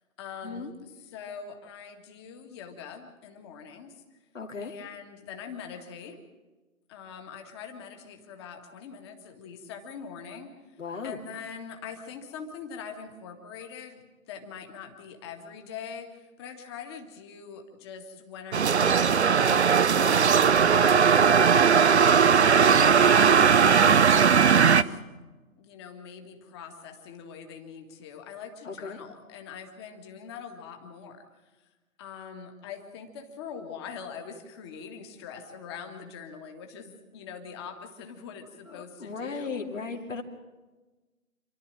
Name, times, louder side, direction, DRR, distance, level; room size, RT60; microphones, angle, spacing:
voice 1, 0.2-0.7 1.0-4.0 4.6-6.2 6.9-10.5 11.0-21.5 22.0-25.0 25.6-31.3 32.0-39.6, left 6 dB, 20° left, 5 dB, 1.9 m, -43 dB
voice 2, 4.3-4.7 10.8-11.2 28.6-29.0 38.7-40.2, left 4 dB, 60° left, 2 dB, 2.8 m, -36 dB
sound 1, 18.5-24.8, right 6 dB, 50° right, 0.8 m, -19 dB
28.0 x 12.5 x 8.9 m, 1.2 s
figure-of-eight pair, 145°, 42 cm